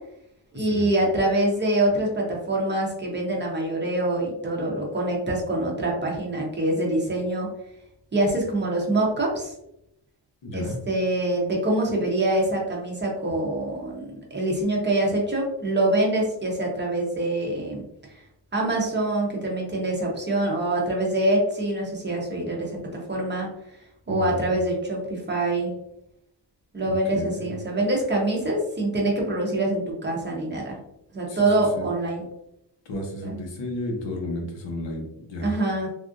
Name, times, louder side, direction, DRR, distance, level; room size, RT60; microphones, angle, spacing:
voice 1, 0.5-7.5 8.1-9.5 10.5-17.8 18.5-22.8 23.1-23.5 24.1-25.7 26.7-30.8 31.1-32.2 33.2-33.4 35.4-35.9, right 1 dB, 25° right, -2 dB, 0.6 m, -25 dB
voice 2, 10.4-10.8 24.1-24.6 26.9-27.5 31.3-31.9 32.9-35.5, left 1 dB, 80° left, 2 dB, 0.9 m, -33 dB
3.4 x 2.4 x 2.5 m, 0.81 s
wide cardioid pair, 180°, 44 cm